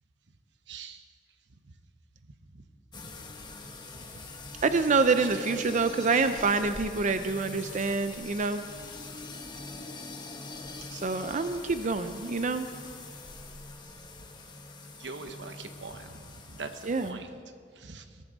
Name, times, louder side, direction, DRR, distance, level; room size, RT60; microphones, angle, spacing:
voice 1, 0.7-1.0 15.0-16.1 16.6-16.7 17.0-17.3 17.8-18.0, right 4 dB, 90° right, 8 dB, 1.0 m, -41 dB
sound 1, 2.9-17.1, left 3 dB, 25° left, 1.2 m, -43 dB
voice 2, 4.6-8.6 10.9-12.7 16.8-17.2, right 4 dB, 45° right, 9 dB, 0.5 m, -27 dB
20.0 x 13.5 x 4.0 m, 2.1 s
head